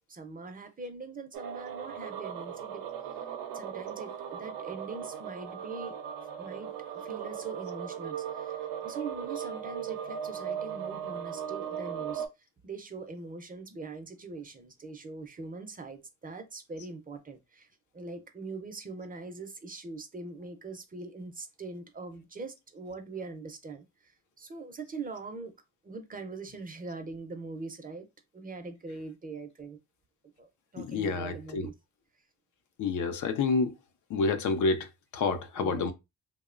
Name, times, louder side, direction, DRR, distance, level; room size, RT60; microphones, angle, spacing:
voice 1, 0.1-2.8 3.1-3.2 3.5-6.0 6.4-12.3 12.6-17.7 17.9-25.5 25.8-28.1 28.3-29.8 30.4-31.7 35.6-35.9, right 3 dB, 25° right, 0.5 m, -42 dB
sound 1, 1.3-12.3, right 8 dB, 75° right, 0.6 m, -38 dB
voice 2, 30.8-31.7 32.8-33.8 34.1-35.9, left 4 dB, 60° left, 0.6 m, -29 dB
2.8 x 2.1 x 2.4 m
cardioid pair, 80°, 33 cm